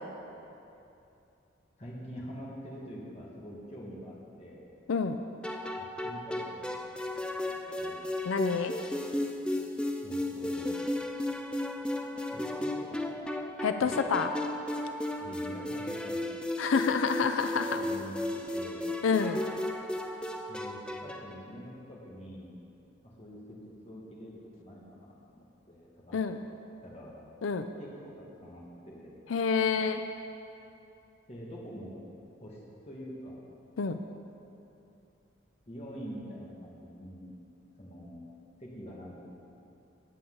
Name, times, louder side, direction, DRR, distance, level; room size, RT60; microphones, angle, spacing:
voice 1, 1.8-4.6 5.8-6.7 7.1-8.0 10.0-10.8 12.3-13.0 13.8-14.0 15.2-16.2 17.7-18.8 20.5-22.5 23.0-26.2 26.8-27.2 27.8-29.1 31.3-32.0 32.4-32.6 32.9-33.4 35.7-37.3 37.8-38.2 38.6-39.3, equal, 30° left, -5 dB, 1.9 m, -45 dB
sound 1, 5.4-21.4, left 1 dB, 5° left, 0.5 m, -35 dB
voice 2, 8.3-8.7 13.6-14.3 16.6-17.8 19.0-19.4 26.1-26.4 27.4-27.7 29.3-30.0 33.8-34.0, left 5 dB, 85° left, 8 dB, 0.5 m, -28 dB
17.5 x 8.7 x 3.9 m, 2.7 s
head